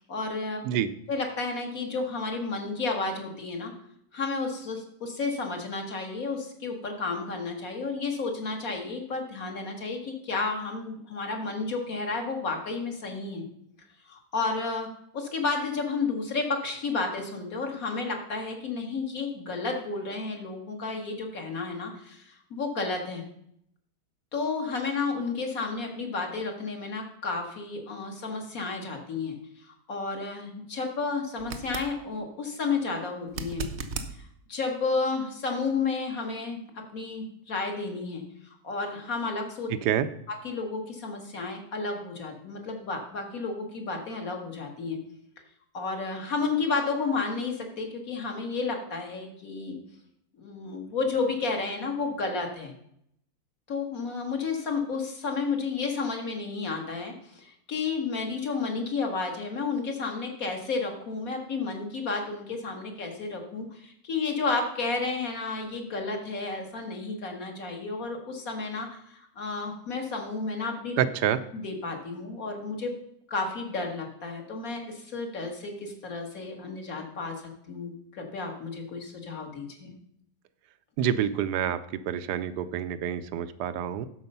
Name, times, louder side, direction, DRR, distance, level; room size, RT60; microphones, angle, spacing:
voice 1, 0.0-0.6 1.1-3.7 4.1-13.4 14.1-14.9 15.1-23.2 24.3-33.7 34.5-36.6 36.9-39.7 40.4-45.0 45.7-49.8 50.4-52.7 53.7-71.0 71.5-72.9 73.3-79.9, left 4 dB, 55° left, 2 dB, 1.9 m, -32 dB
sound 1, 31.4-31.9 33.3-34.1 37.1-37.2, right 4 dB, 50° right, 0.8 m, -35 dB
voice 2, 39.7-40.1 71.0-71.4 81.0-81.8 82.1-84.1, right 9 dB, 75° right, 13 dB, 1.1 m, -27 dB
12.5 x 4.9 x 5.4 m, 0.72 s
omnidirectional pair, 1.8 m